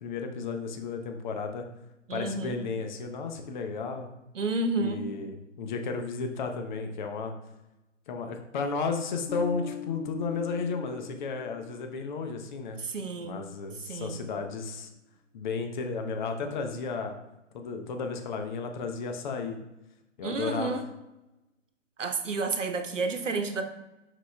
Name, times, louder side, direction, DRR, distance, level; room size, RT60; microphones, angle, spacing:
voice 1, 0.0-1.6 2.1-4.1 4.8-7.3 8.1-12.8 13.2-14.9 15.3-17.2 17.5-19.6 20.2-20.7, left 4 dB, 40° left, 5 dB, 0.9 m, -33 dB
voice 2, 2.1-2.6 4.3-5.1 12.8-13.4 13.9-14.2 20.2-20.9 22.0-23.6, right 3 dB, 75° right, 7 dB, 1.0 m, -30 dB
Bass guitar, 9.3-11.9, left 6 dB, 85° left, 0.9 m, -41 dB
11.0 x 5.0 x 2.3 m, 0.98 s
figure-of-eight pair, 125°, 37 cm